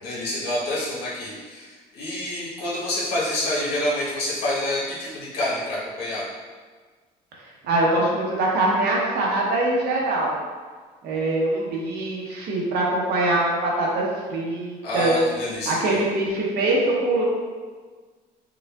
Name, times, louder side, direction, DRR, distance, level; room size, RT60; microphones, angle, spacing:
voice 1, 0.0-6.2 14.8-16.0, left 1 dB, 85° left, -7 dB, 1.2 m, -27 dB
voice 2, 7.6-10.3 11.0-15.2 15.7-17.2, right 2 dB, 75° right, -3 dB, 1.0 m, -23 dB
4.9 x 2.4 x 2.3 m, 1.5 s
cardioid pair, 110°, 17 cm